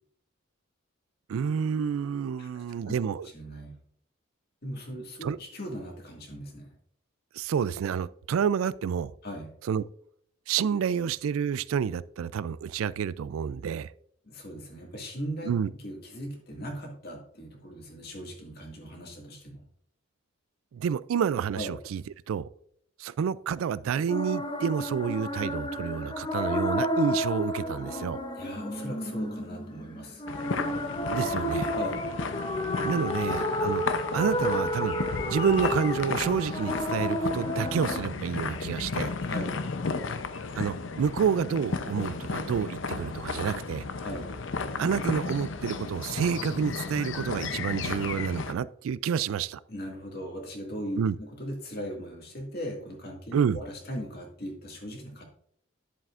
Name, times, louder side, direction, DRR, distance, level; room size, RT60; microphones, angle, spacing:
voice 1, 1.3-3.3 5.2-5.4 7.3-9.1 9.7-9.8 10.5-13.9 15.5-15.7 20.7-22.5 23.0-28.2 31.1-31.7 32.8-33.8 34.1-35.0 35.3-39.1 40.6-43.8 44.8-49.6 50.9-51.2 53.3-53.6, right 7 dB, 80° right, 0.3 m, -29 dB
voice 2, 2.4-3.0 3.3-3.8 4.6-6.7 9.2-9.5 14.2-19.6 21.6-21.7 28.3-30.3 31.7-32.1 39.2-39.6 44.0-44.3 49.7-55.2, equal, 50° left, 2.0 m, -39 dB
Greensleeves ghost humming into her memories, 24.1-38.0, equal, 25° left, 0.7 m, -31 dB
sound 1, 30.3-48.5, left 4 dB, 65° left, 0.6 m, -34 dB
10.5 x 7.5 x 2.5 m
head